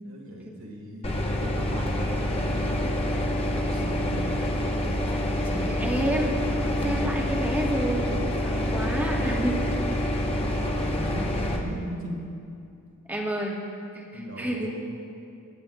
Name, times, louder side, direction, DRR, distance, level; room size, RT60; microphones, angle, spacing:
voice 1, 0.0-1.1 1.3-3.0 3.5-4.5 7.4-8.2 9.1-12.2 14.1-14.7, right 1 dB, 65° right, -1 dB, 1.8 m, -39 dB
sound 1, 1.0-11.6, left 1 dB, 25° left, 0.8 m, -27 dB
voice 2, 5.4-6.6 6.8-9.8 13.1-13.6 13.9-14.1 14.4-14.7, right 1 dB, 10° right, -1 dB, 1.1 m, -29 dB
22.5 x 9.2 x 2.3 m, 2.6 s
head